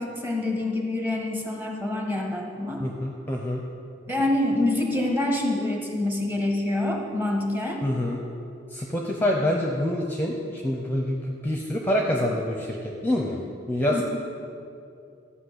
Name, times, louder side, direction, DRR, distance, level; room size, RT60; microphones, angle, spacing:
voice 1, 0.0-2.8 4.1-7.8 13.9-14.0, left 2 dB, 10° right, 1 dB, 1.5 m, -26 dB
voice 2, 2.8-3.6 7.8-8.2 8.7-13.4 13.7-14.0, left 1 dB, 10° left, 0 dB, 0.8 m, -26 dB
13.0 x 5.7 x 8.1 m, 2.6 s
head